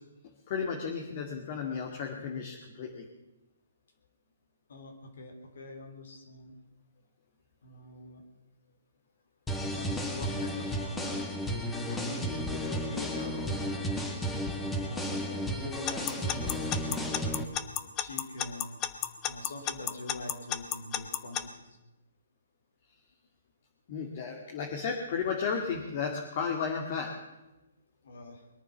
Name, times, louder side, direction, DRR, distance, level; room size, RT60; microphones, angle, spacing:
voice 1, 0.5-3.1 23.9-27.1, left 6 dB, 45° left, 1 dB, 2.2 m, -33 dB
voice 2, 4.7-6.6 7.6-8.3 9.7-11.3 11.8-13.9 14.8-18.8 19.2-21.8 28.0-28.5, left 2 dB, 70° left, 4 dB, 3.3 m, -44 dB
sound 1, 9.5-17.4, equal, 10° left, 1.8 m, -33 dB
Alarm / Clock, 15.9-21.4, left 12 dB, 25° left, 0.9 m, -31 dB
21.5 x 9.2 x 7.2 m, 1.0 s
hypercardioid pair, 145°, 0 cm